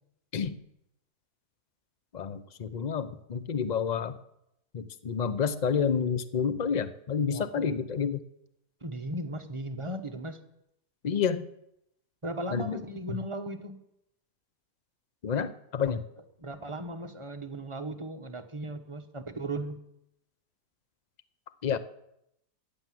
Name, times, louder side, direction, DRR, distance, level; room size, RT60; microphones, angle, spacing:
voice 1, 2.1-4.2 4.7-8.2 11.0-11.5 12.5-12.8 13.1-13.2 15.2-16.0 21.6-21.8, left 6 dB, 45° left, 13 dB, 0.6 m, -29 dB
voice 2, 7.3-7.8 8.8-10.4 12.2-13.8 16.4-19.8, right 1 dB, 20° right, 6 dB, 0.9 m, -37 dB
15.0 x 10.5 x 7.7 m, 0.79 s
omnidirectional pair, 1.8 m